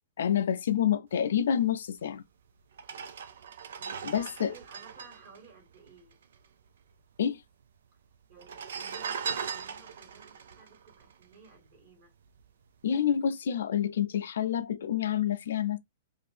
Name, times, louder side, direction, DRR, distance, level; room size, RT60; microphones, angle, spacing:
voice 1, 0.2-2.2 4.0-4.5 7.2-7.4 12.8-15.8, left 9 dB, 75° left, 0.4 m, -28 dB
sound 1, 2.1-2.2 2.7-6.4 6.7-6.8 6.9-7.6 8.3-11.8 12.3-12.5, right 6 dB, 75° right, 0.4 m, -39 dB
voice 2, 3.8-6.2 8.3-12.1, right 4 dB, 50° right, 1.8 m, -55 dB
2.5 x 2.5 x 3.2 m
hypercardioid pair, 115°, 0 cm